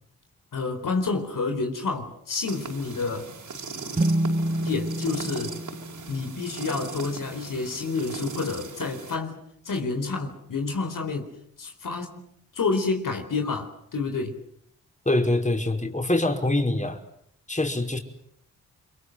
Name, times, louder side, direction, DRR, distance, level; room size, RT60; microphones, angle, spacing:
voice 1, 0.5-3.3 4.6-5.6 6.1-9.4 9.6-11.3 11.6-14.4, left 4 dB, 70° left, 4.2 m, -29 dB
sound 1, 2.4-9.2, right 4 dB, 65° right, 5.9 m, -38 dB
sound 2, 4.0-7.5, right 1 dB, 25° right, 2.4 m, -29 dB
voice 2, 15.1-17.0 17.5-18.0, left 2 dB, 20° left, 5.4 m, -24 dB
29.5 x 23.5 x 7.9 m
supercardioid pair, 45°, 33 cm